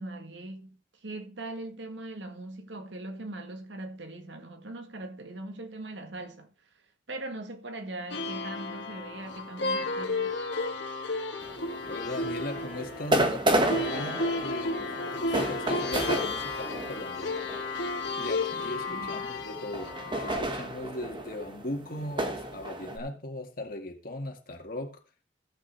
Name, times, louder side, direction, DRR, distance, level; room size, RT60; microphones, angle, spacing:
voice 1, 0.0-6.5 7.1-10.4 18.5-19.3, right 2 dB, 90° right, 1.7 m, -40 dB
sound 1, 8.1-20.4, left 2 dB, 80° left, 1.5 m, -33 dB
sound 2, 11.4-18.5 19.4-23.0, right 1 dB, 30° right, 1.2 m, -32 dB
voice 2, 11.9-17.3 18.2-25.0, left 1 dB, 55° left, 2.0 m, -38 dB
13.5 x 6.2 x 4.4 m
head